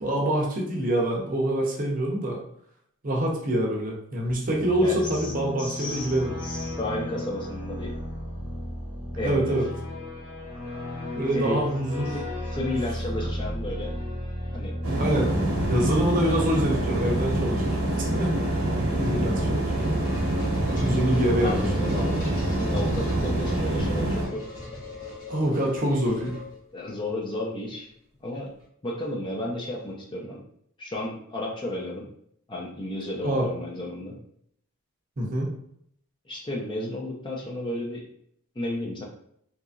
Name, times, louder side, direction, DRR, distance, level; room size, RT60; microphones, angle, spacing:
voice 1, 0.0-2.4 3.0-6.3 9.2-9.7 11.1-12.2 12.7-12.8 13.2-13.3 15.0-15.4 15.7-18.3 19.0-19.8 20.8-22.1 25.3-26.4 33.2-33.5 35.2-35.5, right 1 dB, 40° right, -1 dB, 0.6 m, -25 dB
sound 1, 4.2-20.9, left 1 dB, 60° left, 1.2 m, -36 dB
voice 2, 4.8-5.3 5.6-6.1 6.4-7.9 9.2-9.6 11.3-11.6 12.1-13.9 14.5-14.8 21.3-22.2 22.7-24.4 26.7-27.9 28.2-28.5 28.8-30.4 30.8-32.0 32.5-34.2 36.3-38.0 38.6-39.0, left 1 dB, 20° left, -2 dB, 0.4 m, -33 dB
sound 2, 14.8-24.3, right 1 dB, 75° right, 0.8 m, -26 dB
sound 3, 19.5-26.9, left 1 dB, 90° left, 1.2 m, -39 dB
2.8 x 2.5 x 2.3 m, 0.69 s
head